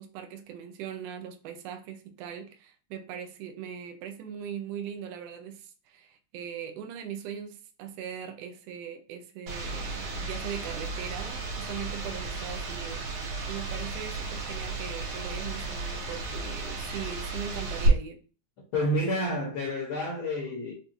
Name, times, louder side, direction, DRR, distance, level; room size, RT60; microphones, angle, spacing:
voice 1, 0.0-18.2, right 8 dB, 90° right, 1.4 m, -40 dB
sound 1, 9.5-17.9, right 1 dB, 70° right, 2.6 m, -34 dB
voice 2, 18.7-20.7, equal, 65° left, 1.3 m, -29 dB
5.5 x 2.3 x 2.6 m
omnidirectional pair, 3.4 m